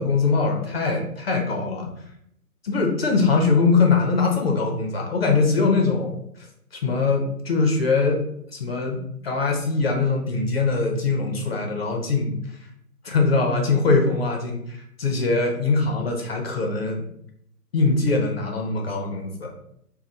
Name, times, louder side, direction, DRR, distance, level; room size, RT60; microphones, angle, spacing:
voice 1, 0.0-1.9 2.6-6.2 6.8-8.2 8.6-12.3 13.0-17.0 17.7-19.5, left 4 dB, 40° left, 2 dB, 0.8 m, -22 dB
3.2 x 2.3 x 3.9 m, 0.72 s
figure-of-eight pair, 140°, 48 cm